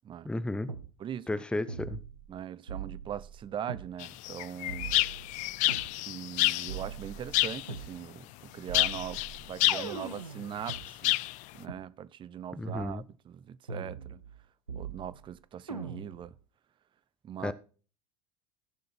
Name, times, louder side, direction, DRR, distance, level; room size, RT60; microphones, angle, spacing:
voice 1, 0.3-0.7 1.3-2.0 12.6-13.0 17.4-17.5, left 2 dB, 5° left, 0.8 m, -33 dB
sound 1, 0.7-0.9 1.7-2.4 2.7-3.9 4.7-5.9 6.7-7.9 8.7-10.8 11.7-11.8 12.7-12.9 13.7-14.4 14.7-15.3 15.7-16.3, right 5 dB, 85° right, 1.4 m, -41 dB
voice 2, 1.0-1.3 2.3-4.9 6.1-11.2 11.5-14.2 14.8-16.3 17.2-17.5, right 9 dB, 25° right, 0.7 m, -41 dB
sound 2, 4.0-6.8 7.3-7.8 8.7-10.0 10.7-11.4, left 20 dB, 45° left, 0.5 m, -29 dB
15.5 x 6.6 x 4.4 m
figure-of-eight pair, 75°, 18 cm